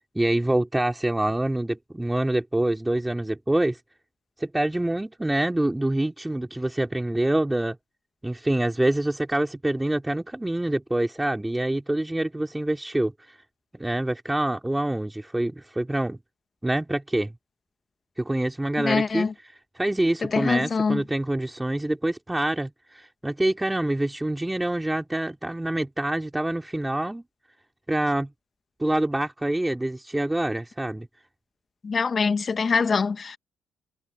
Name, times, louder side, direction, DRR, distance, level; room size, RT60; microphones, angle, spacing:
voice 1, 0.1-3.8 4.4-7.8 8.2-13.1 13.8-16.2 16.6-17.3 18.2-19.3 19.8-27.2 27.9-28.3 28.8-31.1, right 1 dB, 10° right, 3.2 m, -26 dB
voice 2, 18.8-19.3 20.2-21.0 31.8-33.4, left 5 dB, 40° left, 1.7 m, -24 dB
cardioid pair, 90°, 0 cm